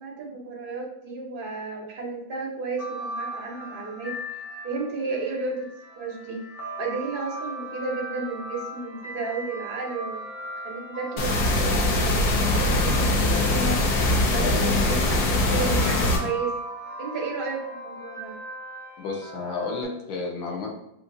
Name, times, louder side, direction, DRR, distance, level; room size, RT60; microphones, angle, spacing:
voice 1, 0.0-4.1 4.6-5.7 6.0-6.4 6.8-10.3 10.6-13.8 14.3-16.5 17.0-18.4, right 3 dB, 60° right, -2 dB, 0.5 m, -32 dB
sound 1, 2.8-13.7 14.6-19.8, right 1 dB, 40° left, 0.7 m, -38 dB
sound 2, 11.2-16.2, left 2 dB, 60° left, 1.1 m, -22 dB
voice 2, 19.0-20.7, left 4 dB, 80° left, 0 dB, 1.7 m, -31 dB
6.9 x 2.6 x 2.6 m, 0.83 s
omnidirectional pair, 2.1 m